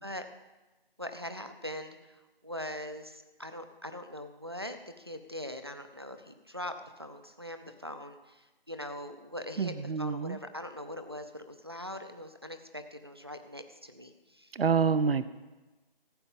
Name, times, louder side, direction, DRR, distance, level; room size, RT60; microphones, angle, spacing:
voice 1, 1.0-6.7 7.0-14.5, left 1 dB, 25° right, 8 dB, 0.5 m, -42 dB
voice 2, 9.6-10.4 14.5-15.3, right 5 dB, 80° right, 14 dB, 0.7 m, -27 dB
15.0 x 8.6 x 5.3 m, 1.1 s
figure-of-eight pair, 170°, 29 cm